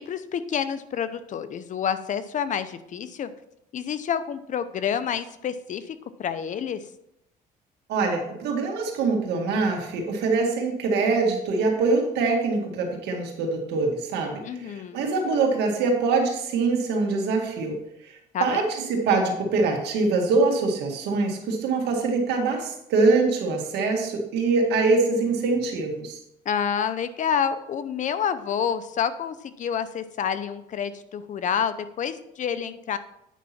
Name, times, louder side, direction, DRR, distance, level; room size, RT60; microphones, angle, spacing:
voice 1, 0.0-3.3 3.7-6.8 14.4-15.1 18.3-18.6 26.5-33.0, left 8 dB, 50° left, 12 dB, 0.7 m, -28 dB
voice 2, 7.9-17.8 18.0-26.2, right 3 dB, 80° right, 1 dB, 2.1 m, -24 dB
9.2 x 5.7 x 4.3 m, 0.80 s
cardioid pair, 110°, 17 cm